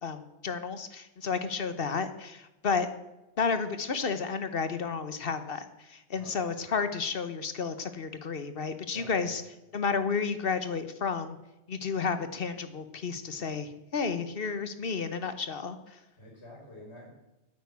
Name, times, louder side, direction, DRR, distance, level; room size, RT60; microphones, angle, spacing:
voice 1, 0.0-2.9 3.4-9.4 9.7-11.4 11.7-16.0, left 5 dB, 60° left, 11 dB, 1.2 m, -32 dB
voice 2, 8.9-9.4 16.2-17.1, left 1 dB, 80° left, -3 dB, 5.1 m, -49 dB
9.3 x 9.1 x 8.3 m, 0.99 s
omnidirectional pair, 1.1 m